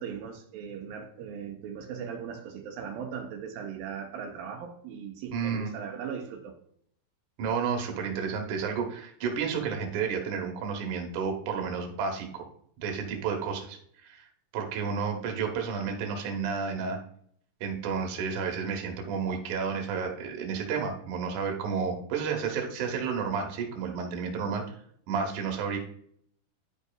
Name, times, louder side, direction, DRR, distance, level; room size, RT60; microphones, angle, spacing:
voice 1, 0.0-6.5, right 7 dB, 85° right, 3 dB, 2.5 m, -38 dB
voice 2, 5.3-5.7 7.4-12.5 12.8-14.3 14.5-17.0 17.6-24.8 25.1-25.8, right 6 dB, 65° right, 2 dB, 2.4 m, -31 dB
11.0 x 5.4 x 2.3 m, 0.65 s
omnidirectional pair, 4.0 m